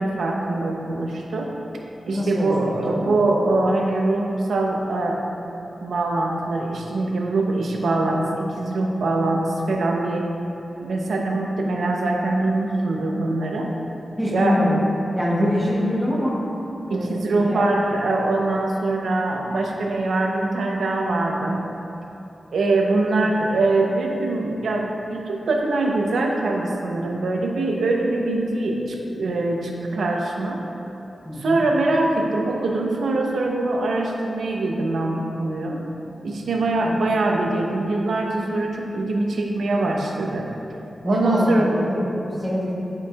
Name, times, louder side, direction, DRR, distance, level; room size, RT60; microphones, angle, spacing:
voice 1, 0.0-1.5 2.1-5.2 5.8-10.3 10.8-13.7 14.3-14.6 15.4-15.5 16.9-21.7 22.5-30.6 31.4-35.8 36.2-40.5 41.0-41.7, right 2 dB, 80° right, 0 dB, 0.7 m, -23 dB
voice 2, 2.1-2.5 2.9-3.1 14.2-14.8 15.1-16.4 16.9-17.7 23.2-23.3 31.2-31.6 41.0-42.7, left 1 dB, ahead, -6 dB, 0.8 m, -24 dB
11.0 x 4.7 x 2.4 m, 2.9 s
wide cardioid pair, 175°, 0 cm